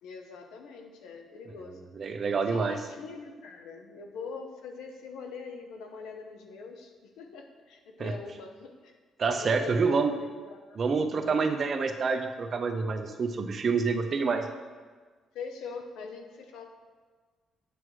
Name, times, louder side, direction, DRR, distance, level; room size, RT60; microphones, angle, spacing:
voice 1, 0.0-1.9 2.5-9.0 9.3-11.4 15.3-16.7, left 4 dB, 90° left, 4 dB, 0.8 m, -43 dB
voice 2, 1.7-2.8 8.0-8.1 9.2-10.1 10.8-14.5, right 4 dB, 50° right, 6 dB, 0.7 m, -27 dB
7.9 x 6.1 x 3.2 m, 1.4 s
cardioid pair, 90°, 0 cm